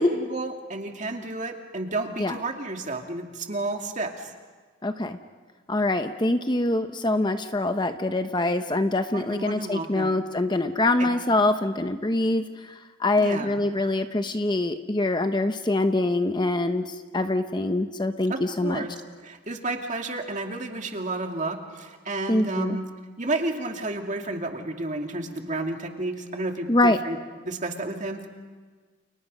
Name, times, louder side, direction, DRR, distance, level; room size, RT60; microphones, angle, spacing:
voice 1, 0.0-4.3 9.1-10.2 11.0-11.1 13.2-13.6 18.3-18.9 19.2-22.9 23.2-27.2 27.4-28.3, right 2 dB, 40° right, 3 dB, 2.4 m, -31 dB
voice 2, 4.8-5.2 5.7-12.4 13.0-18.8 22.3-22.8 26.7-27.0, left 2 dB, 20° left, 8 dB, 0.9 m, -24 dB
30.0 x 30.0 x 5.5 m, 1.4 s
head